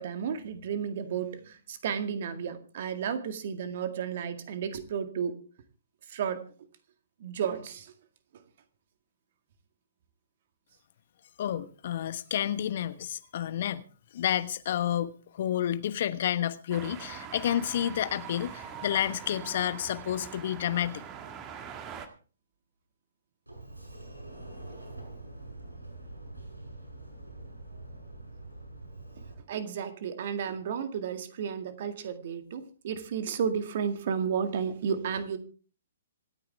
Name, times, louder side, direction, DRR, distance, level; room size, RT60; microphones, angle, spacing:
voice 1, 0.0-5.4 6.1-6.4 7.2-7.9 29.5-35.4, right 7 dB, 50° right, 2.1 m, -32 dB
voice 2, 11.4-13.8 14.1-21.0, left 10 dB, 50° left, 1.2 m, -30 dB
sound 1, 16.7-22.1, right 8 dB, 25° right, 1.8 m, -43 dB
Sliding door, 23.5-29.3, right 2 dB, 85° right, 6.1 m, -45 dB
26.5 x 9.2 x 3.5 m
figure-of-eight pair, 120°, 0 cm